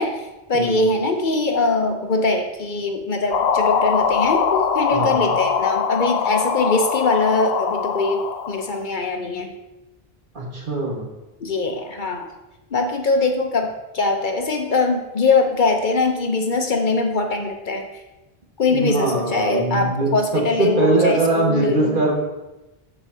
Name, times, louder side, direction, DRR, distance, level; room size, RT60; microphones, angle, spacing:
voice 1, 0.0-9.6 11.4-12.3 12.7-18.0 18.6-22.0, left 3 dB, 55° left, 4 dB, 0.8 m, -22 dB
sound 1, 3.3-8.8, left 6 dB, 85° left, 0.8 m, -22 dB
voice 2, 4.9-5.3 10.3-11.1 18.7-22.1, right 2 dB, 55° right, -2 dB, 1.8 m, -22 dB
14.0 x 4.9 x 2.7 m, 1.0 s
omnidirectional pair, 1.0 m